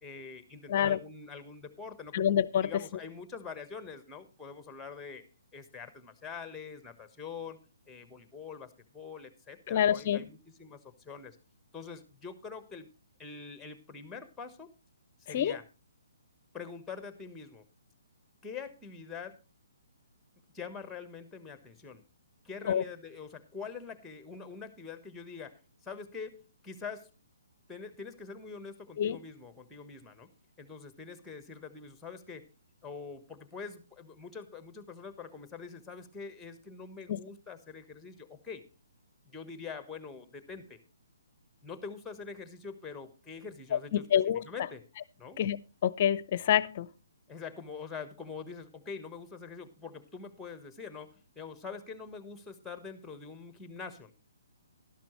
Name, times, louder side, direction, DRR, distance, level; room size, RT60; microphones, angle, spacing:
voice 1, 0.0-2.2 2.6-5.2 5.5-7.6 7.9-11.4 11.7-12.9 13.2-14.7 15.2-15.6 16.5-17.6 18.4-19.4 20.5-22.0 22.4-27.1 27.7-30.3 30.6-32.5 32.8-38.6 39.2-40.8 41.6-44.8 45.2-45.4 47.3-54.1, left 5 dB, 10° left, 11 dB, 1.3 m, -44 dB
voice 2, 2.1-2.7 9.7-10.3 15.3-15.6 22.7-22.8 29.0-29.2 37.1-37.2 43.9-44.4 45.4-45.6 45.8-46.9, left 9 dB, 45° left, 19 dB, 0.6 m, -27 dB
12.5 x 12.0 x 3.1 m, 0.31 s
figure-of-eight pair, 135°, 0 cm